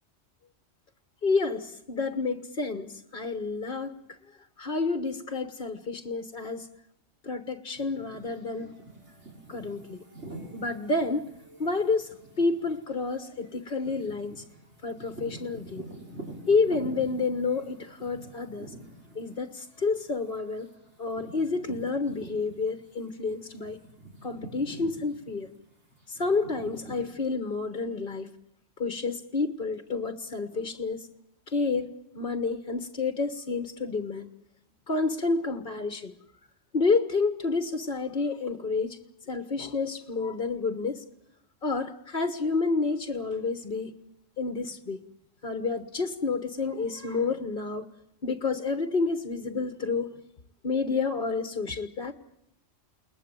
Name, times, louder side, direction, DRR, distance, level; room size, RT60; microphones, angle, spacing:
voice 1, 1.2-4.2 4.6-6.7 7.2-8.7 9.5-10.0 10.5-11.3 11.6-14.4 14.8-15.9 16.5-18.7 19.1-20.7 21.0-23.8 24.2-25.5 26.1-28.3 28.8-31.1 31.5-34.3 34.9-36.1 36.7-39.0 39.3-41.0 41.6-43.9 44.4-45.0 45.4-47.9 48.2-50.2 50.6-52.1, left 4 dB, 45° left, 8 dB, 1.4 m, -29 dB
sound 1, 7.7-22.9 23.2-27.1, right 1 dB, 60° right, 5.7 m, -46 dB
30.0 x 20.5 x 9.1 m, 0.82 s
omnidirectional pair, 1.3 m